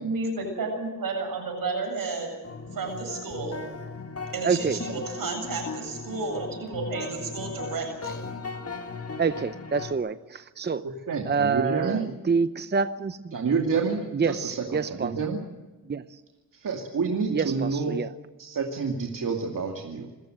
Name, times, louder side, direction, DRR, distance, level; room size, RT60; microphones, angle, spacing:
voice 1, 0.0-2.3 2.7-3.6 4.3-8.2, right 3 dB, 85° right, 3 dB, 7.7 m, -32 dB
sound 1, 2.4-9.9, left 4 dB, 45° left, 2.2 m, -37 dB
voice 2, 4.4-4.8 9.2-10.9 11.2-13.4 14.1-15.1 15.9-16.2 17.3-18.1, right 5 dB, 30° right, 12 dB, 0.8 m, -27 dB
voice 3, 11.1-12.1 13.3-15.4 16.5-18.0 18.4-20.1, right 5 dB, 65° right, 1 dB, 2.5 m, -28 dB
26.5 x 14.5 x 7.9 m, 1.2 s
cardioid pair, 80°, 34 cm